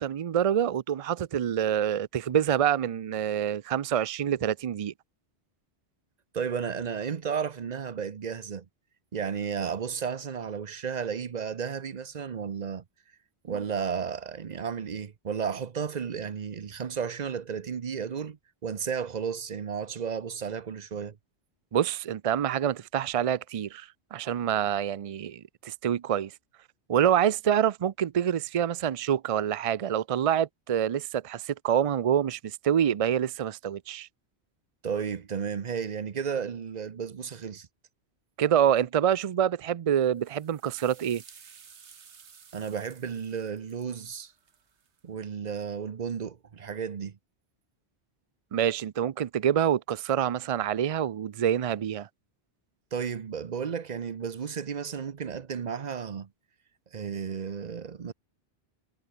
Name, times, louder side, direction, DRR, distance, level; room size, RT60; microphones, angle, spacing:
voice 1, 0.0-4.9 21.7-26.3 26.9-34.1 38.4-41.2 48.5-52.1, right 9 dB, 60° right, 0.3 m, -26 dB
voice 2, 6.3-8.7 9.1-12.8 13.4-21.2 34.8-37.7 42.5-44.3 45.0-47.2 52.9-56.3 56.9-58.1, right 7 dB, 45° right, 0.8 m, -33 dB
sound 1, 40.2-45.0, right 6 dB, 85° right, 1.7 m, -54 dB
omnidirectional pair, 1.1 m